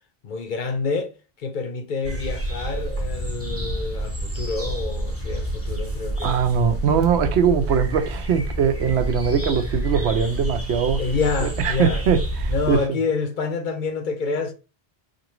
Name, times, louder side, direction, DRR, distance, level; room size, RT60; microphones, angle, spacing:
voice 1, 0.2-6.4 11.0-12.1 12.5-14.5, left 4 dB, 60° left, 0.6 m, -27 dB
sound 1, 2.0-12.8, right 1 dB, 15° right, 0.7 m, -28 dB
voice 2, 6.2-11.0 11.4-12.8, right 7 dB, 85° right, 0.9 m, -21 dB
4.3 x 2.6 x 3.0 m
omnidirectional pair, 1.1 m